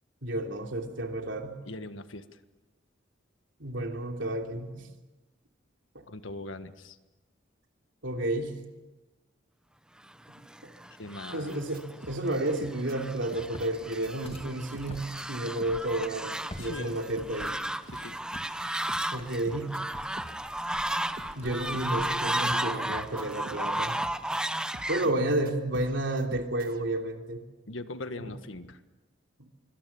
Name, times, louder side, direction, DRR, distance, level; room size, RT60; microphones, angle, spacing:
voice 1, 0.2-1.6 3.6-4.9 5.9-6.0 8.0-8.6 10.6-10.7 11.3-17.6 19.1-19.8 21.3-24.0 24.9-27.4 28.2-28.4 29.4-29.5, right 1 dB, 75° right, 3 dB, 3.1 m, -31 dB
voice 2, 1.7-2.2 6.1-7.0 11.0-11.6 16.6-17.0 17.9-18.2 25.0-25.1 27.7-28.8, left 2 dB, 90° left, 10 dB, 1.5 m, -40 dB
Fowl, 10.3-25.1, right 1 dB, 5° right, 0.7 m, -34 dB
sound 1, 11.5-13.1 13.3-13.8 14.0-26.8, right 1 dB, 50° right, 1.6 m, -49 dB
Walk footsteps, 13.0-22.2, left 1 dB, 30° left, 2.2 m, -49 dB
25.5 x 24.0 x 7.1 m, 1.1 s
head